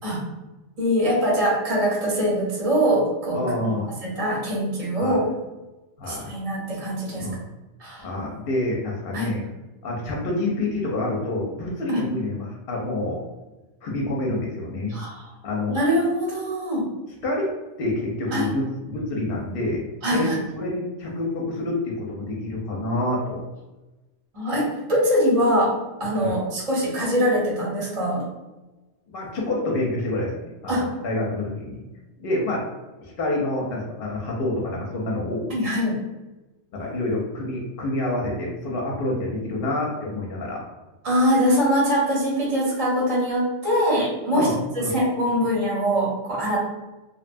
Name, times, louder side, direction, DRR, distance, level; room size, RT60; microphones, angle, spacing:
voice 1, 0.8-3.7 4.0-5.2 6.0-7.3 7.8-8.1 9.1-9.3 11.9-12.0 14.9-15.3 15.7-16.8 18.3-18.5 20.0-20.3 24.3-25.7 26.0-28.2 30.7-30.9 35.5-35.9 41.0-44.5 44.9-46.6, equal, 35° right, -4 dB, 0.7 m, -23 dB
voice 2, 3.3-3.9 5.0-5.2 6.0-6.3 7.2-7.4 8.0-9.5 9.8-13.2 13.8-15.0 15.4-15.8 17.2-17.5 17.8-19.8 20.1-23.4 26.2-26.4 29.1-31.8 32.2-32.6 33.0-35.5 36.7-40.7 44.3-44.9, left 1 dB, 60° left, -2 dB, 0.7 m, -27 dB
2.7 x 2.2 x 2.5 m, 1.1 s
omnidirectional pair, 1.3 m